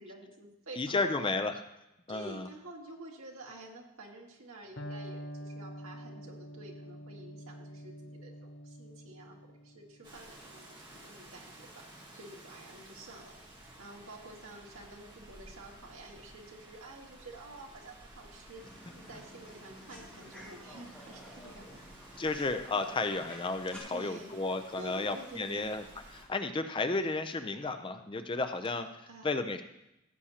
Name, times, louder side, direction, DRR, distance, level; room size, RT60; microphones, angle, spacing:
voice 1, 0.0-1.4 2.1-10.7 11.0-21.8 22.1-22.3 23.9-24.3 24.8-25.8 29.1-29.5, right 2 dB, 70° right, 0 dB, 1.8 m, -50 dB
voice 2, 0.8-1.5 2.1-2.5 22.2-25.8 26.1-29.6, left 3 dB, 20° left, 8 dB, 0.4 m, -33 dB
Electric guitar, 4.8-12.6, equal, 50° left, 0.8 m, -47 dB
Rain, 10.0-26.2, right 1 dB, 20° right, 1.6 m, -54 dB
sound 1, 18.6-23.8, equal, 5° left, 2.4 m, -51 dB
15.0 x 8.5 x 2.9 m, 0.89 s
head